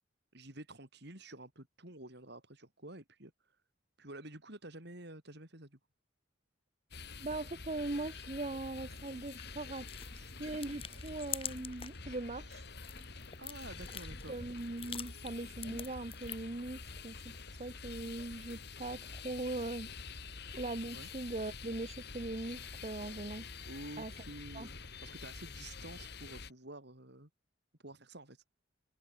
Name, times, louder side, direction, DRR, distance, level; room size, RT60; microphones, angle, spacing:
voice 1, 0.3-3.3 4.0-5.8 13.4-14.4 20.9-21.1 23.6-27.3 27.8-28.4, right 1 dB, 60° right, 5.9 m, -50 dB
sound 1, 6.9-26.5, left 4 dB, 60° left, 2.7 m, -48 dB
voice 2, 7.2-9.9 10.1-12.6 14.3-17.3 17.6-19.9 20.5-23.4 24.0-24.1 24.5-24.7, right 2 dB, 35° right, 1.0 m, -40 dB
sound 2, 9.0-12.0 12.4-16.6, left 7 dB, 30° left, 3.7 m, -46 dB
head